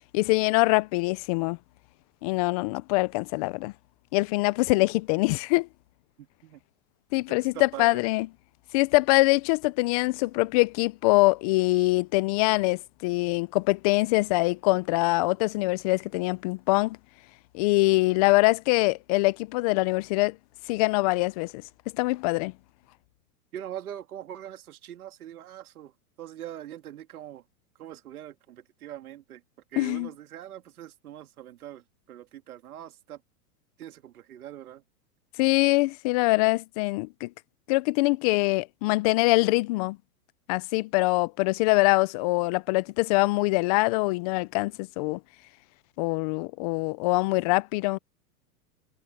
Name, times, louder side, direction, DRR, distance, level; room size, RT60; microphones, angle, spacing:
voice 1, 0.1-1.6 2.2-3.7 4.1-5.7 7.1-8.3 8.7-17.0 17.5-20.4 20.7-21.6 21.9-22.5 29.8-30.1 35.4-37.3 37.7-40.0 40.5-45.2 46.0-48.0, left 23 dB, 30° left, 0.4 m, -24 dB
voice 2, 6.2-6.6 7.3-8.0 23.5-25.9 26.2-27.4 27.8-29.4 29.7-33.2 33.8-34.8, right 11 dB, 80° right, 2.6 m, -42 dB
hypercardioid pair, 130°, 43 cm